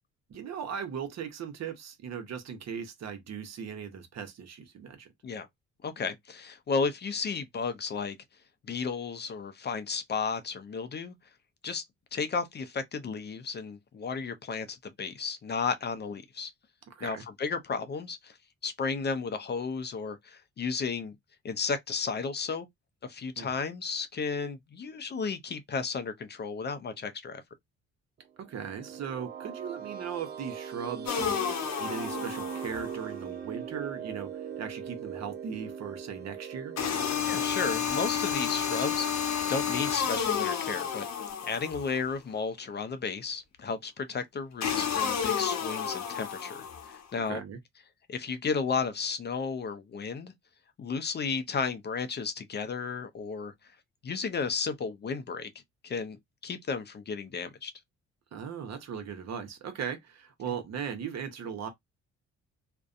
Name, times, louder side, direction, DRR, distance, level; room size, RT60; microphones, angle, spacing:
voice 1, 0.3-5.1 16.9-17.2 23.4-23.5 28.4-36.7 47.3-47.6 58.3-61.7, right 7 dB, 60° right, 0.8 m, -38 dB
voice 2, 5.8-8.2 8.7-11.1 11.6-11.8 12.1-16.5 17.0-18.4 18.6-21.1 21.4-22.7 23.0-27.4 37.2-41.1 41.5-47.4 48.1-50.3 50.8-53.5 54.0-55.5 55.8-56.2 56.4-57.7, left 5 dB, 35° left, 0.5 m, -33 dB
sound 1, 28.4-39.3, right 8 dB, 35° right, 0.4 m, -41 dB
sound 2, 31.1-33.0 36.8-42.0 44.6-47.0, left 8 dB, 65° left, 0.8 m, -31 dB
2.5 x 2.1 x 2.4 m
cardioid pair, 90°, 30 cm